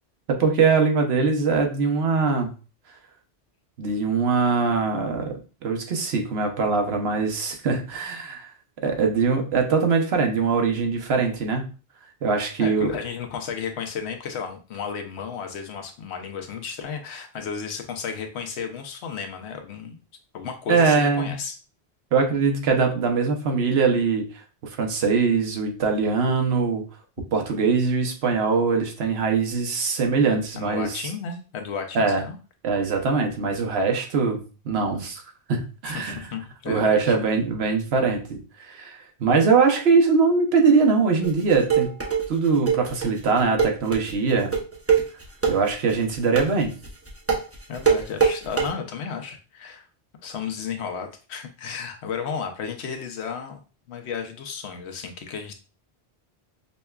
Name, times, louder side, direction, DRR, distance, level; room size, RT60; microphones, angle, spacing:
voice 1, 0.3-2.5 3.8-5.3 5.6-8.5 8.8-11.7 12.2-12.9 20.7-21.3 22.1-26.8 27.3-31.0 31.9-32.2 32.6-35.2 35.5-36.3 36.7-41.9 42.3-44.5 45.5-46.7, right 4 dB, 70° right, 4 dB, 1.0 m, -22 dB
voice 2, 12.6-20.0 20.3-21.6 30.5-32.4 35.8-37.2 47.7-49.9 50.2-53.6 53.9-55.5, left 6 dB, 80° left, 5 dB, 0.9 m, -33 dB
sound 1, 41.2-48.7, right 6 dB, 20° right, 0.5 m, -22 dB
5.3 x 2.2 x 2.2 m, 0.35 s
omnidirectional pair, 1.1 m